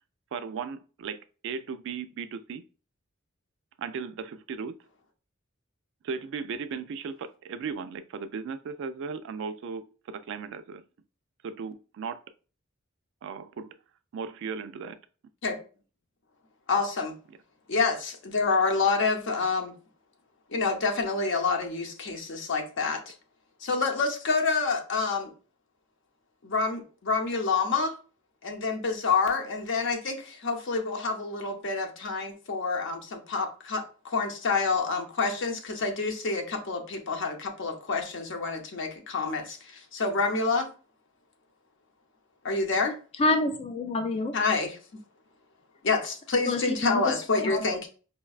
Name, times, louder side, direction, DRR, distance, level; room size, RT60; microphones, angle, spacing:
voice 1, 0.3-2.6 3.8-4.7 6.0-10.8 11.4-12.2 13.2-13.8 14.1-15.0, right 5 dB, 60° right, 0.3 m, -36 dB
voice 2, 16.7-17.1 17.7-19.7 20.5-23.1 23.6-25.3 26.4-27.9 28.4-40.7 42.4-43.0 44.3-45.0 45.8-47.9, left 4 dB, 60° left, 0.7 m, -28 dB
voice 3, 43.2-44.4 46.5-47.7, left 2 dB, 30° left, 0.3 m, -28 dB
5.2 x 2.2 x 2.3 m
head